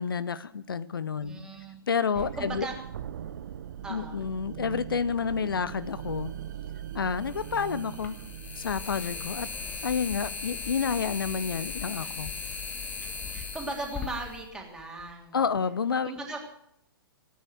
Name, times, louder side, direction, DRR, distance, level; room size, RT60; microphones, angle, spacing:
voice 1, 0.0-1.4 1.9-2.7 3.9-6.3 6.9-8.2 8.6-9.5 9.8-12.3 15.3-16.1, left 6 dB, 65° left, 17 dB, 0.7 m, -29 dB
voice 2, 1.2-1.8 2.4-2.7 3.8-4.2 13.3-15.4 16.0-16.4, right 2 dB, 5° right, -1 dB, 3.2 m, -37 dB
sound 1, 2.1-11.0, right 10 dB, 50° right, 0.9 m, -41 dB
sound 2, 5.7-5.8 7.2-15.1, left 5 dB, 15° left, 1.6 m, -38 dB
18.0 x 9.4 x 8.1 m, 0.75 s
figure-of-eight pair, 115°, 13 cm